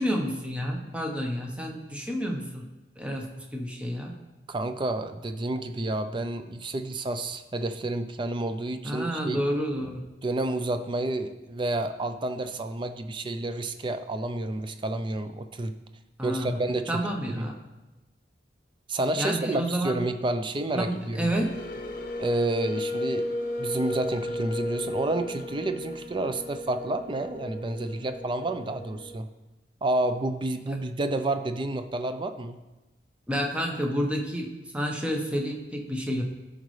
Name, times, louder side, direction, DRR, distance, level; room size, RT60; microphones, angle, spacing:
voice 1, 0.0-2.6 3.0-4.1 8.8-10.1 16.2-17.6 19.1-20.0 20.7-21.6 30.7-30.8 33.3-36.2, equal, 5° right, 1 dB, 0.9 m, -30 dB
voice 2, 4.5-9.4 10.2-15.7 16.2-17.0 17.3-17.5 18.9-21.3 22.2-23.3 23.6-29.3 29.8-32.6, right 2 dB, 30° right, 9 dB, 0.4 m, -30 dB
sound 1, 20.7-29.2, left 1 dB, 55° left, 0.7 m, -34 dB
13.0 x 5.2 x 3.2 m, 1.1 s
head